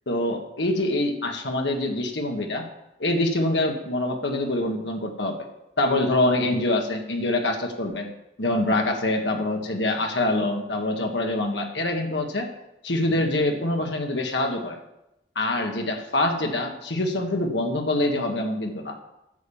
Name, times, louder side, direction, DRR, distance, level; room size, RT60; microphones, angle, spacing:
voice 1, 0.1-2.7 3.0-5.5 5.8-8.1 8.4-12.5 12.8-14.8 15.3-19.0, left 1 dB, 85° left, 3 dB, 1.6 m, -25 dB
10.5 x 7.0 x 7.1 m, 0.91 s
head